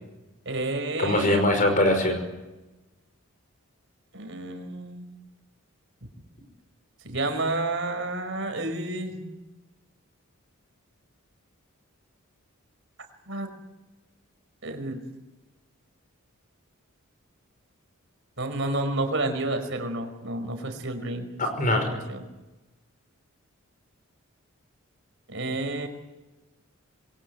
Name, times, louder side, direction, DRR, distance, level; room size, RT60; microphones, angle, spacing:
voice 1, 0.4-1.5 4.1-5.1 7.0-9.2 13.3-13.5 14.6-15.0 18.4-21.3 21.7-22.2 25.3-25.9, right 2 dB, 60° right, 7 dB, 5.1 m, -30 dB
voice 2, 1.0-2.2 21.4-21.9, left 1 dB, 35° left, 6 dB, 5.5 m, -22 dB
27.5 x 22.5 x 8.0 m, 1.1 s
head